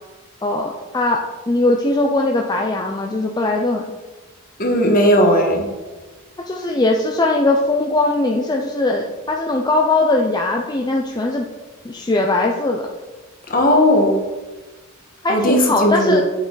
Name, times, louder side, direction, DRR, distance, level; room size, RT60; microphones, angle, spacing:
voice 1, 0.4-1.2 1.5-3.8 6.5-11.4 11.8-12.9 15.2-16.2, left 2 dB, 20° left, 1 dB, 0.6 m, -20 dB
voice 2, 4.6-5.7 13.5-14.2 15.3-16.2, equal, 40° left, 2 dB, 1.7 m, -16 dB
8.7 x 8.0 x 4.0 m, 1.3 s
head